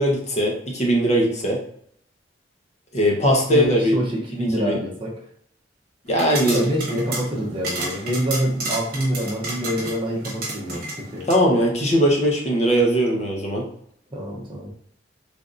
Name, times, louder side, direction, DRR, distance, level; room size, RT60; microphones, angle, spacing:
voice 1, 0.0-1.6 2.9-4.0 4.3-4.8 6.1-6.6 11.3-13.6, equal, 40° left, -2 dB, 0.8 m, -20 dB
voice 2, 3.2-5.2 6.5-11.3 14.1-14.7, equal, 30° right, -3 dB, 0.8 m, -26 dB
sound 1, 6.1-11.4, right 2 dB, 55° right, 1.1 m, -31 dB
3.4 x 2.7 x 2.5 m, 0.67 s
head